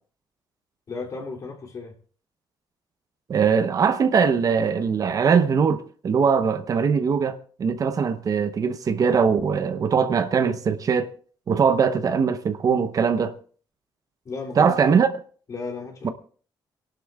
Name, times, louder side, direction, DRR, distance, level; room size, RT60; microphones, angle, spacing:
voice 1, 0.9-1.9 14.2-14.8 15.5-16.1, left 4 dB, 45° left, 2.8 m, -34 dB
voice 2, 3.3-11.1 11.5-13.3 14.6-15.1 16.0-16.1, right 6 dB, 45° right, 0.8 m, -21 dB
29.0 x 11.5 x 2.4 m
cardioid pair, 105°, 8 cm